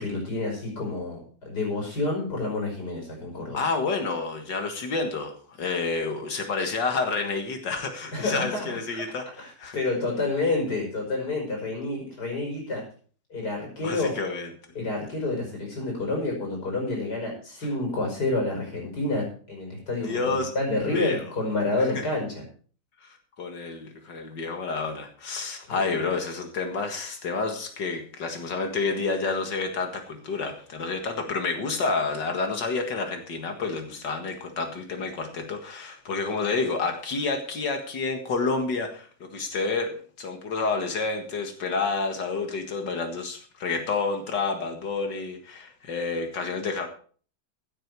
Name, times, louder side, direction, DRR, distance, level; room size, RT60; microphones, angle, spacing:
voice 1, 0.0-3.6 8.1-9.0 9.4-12.8 13.3-14.1 14.7-22.4 25.7-26.1, left 2 dB, 65° left, 0 dB, 6.0 m, -29 dB
voice 2, 3.5-5.3 5.6-9.3 9.6-9.8 13.8-14.5 20.0-20.5 20.9-21.2 23.0-46.9, left 4 dB, 80° left, 5 dB, 2.4 m, -29 dB
15.5 x 9.0 x 4.7 m, 0.43 s
omnidirectional pair, 1.9 m